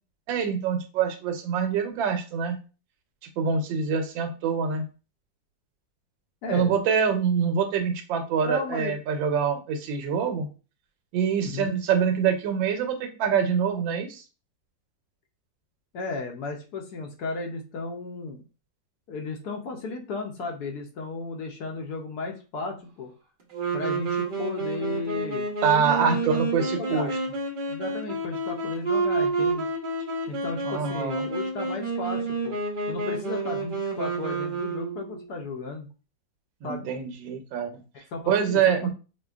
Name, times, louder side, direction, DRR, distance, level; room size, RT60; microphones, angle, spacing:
voice 1, 0.3-2.6 3.4-4.8 6.5-10.5 11.1-14.2 25.6-27.2 30.6-31.2 36.6-37.7 38.3-38.9, right 7 dB, 90° right, 6 dB, 1.4 m, -25 dB
voice 2, 6.4-6.7 8.4-9.0 11.4-11.8 15.9-18.4 19.1-23.1 23.7-25.5 26.0-26.2 26.6-27.1 27.7-29.7 30.3-32.6 32.9-35.9 36.6-36.9 37.9-38.8, left 3 dB, 70° left, 2 dB, 1.0 m, -34 dB
Wind instrument woodwind instrument, 23.5-35.2, right 3 dB, 60° right, 0.5 m, -29 dB
5.0 x 2.2 x 2.3 m, 0.33 s
omnidirectional pair, 2.0 m